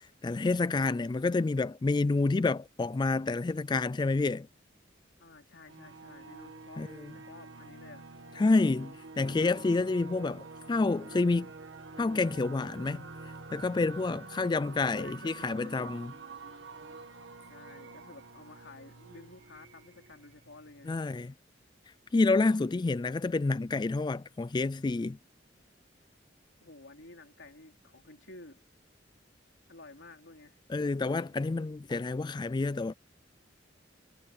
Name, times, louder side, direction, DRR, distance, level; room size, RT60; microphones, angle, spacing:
voice 1, 0.2-4.5 6.8-7.1 8.4-11.5 12.0-13.0 13.5-16.1 20.9-21.3 22.1-25.2 30.7-32.9, left 3 dB, 25° left, 0.3 m, -28 dB
voice 2, 5.2-8.1 14.3-16.1 17.5-20.9 26.6-28.6 29.7-30.6, left 2 dB, 85° left, 3.0 m, -52 dB
sound 1, 5.7-21.0, right 3 dB, 80° right, 2.2 m, -48 dB
head